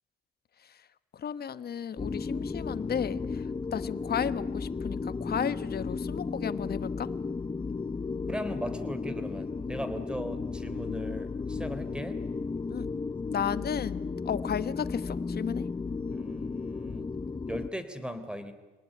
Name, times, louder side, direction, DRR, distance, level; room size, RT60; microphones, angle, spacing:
voice 1, 1.1-7.1 12.7-12.9 13.3-15.6, left 8 dB, 50° left, 14 dB, 1.3 m, -34 dB
sound 1, 2.0-17.7, left 4 dB, 25° left, 0.9 m, -34 dB
voice 2, 8.3-12.2 16.1-17.1 17.5-18.5, equal, 5° right, 10 dB, 3.6 m, -38 dB
27.0 x 19.0 x 9.5 m, 1.3 s
cardioid pair, 90°, 20 cm